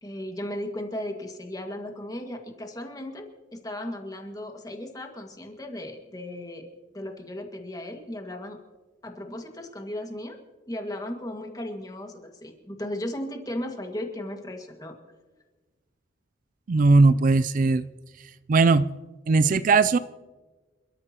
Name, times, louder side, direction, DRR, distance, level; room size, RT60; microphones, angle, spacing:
voice 1, 0.0-6.7 6.9-8.6 9.0-10.4 10.7-15.0, left 1 dB, 20° left, 3 dB, 1.8 m, -36 dB
voice 2, 16.7-17.9 18.5-18.9 19.3-20.0, right 3 dB, 45° right, 15 dB, 0.4 m, -19 dB
28.5 x 13.5 x 2.9 m, 1.3 s
head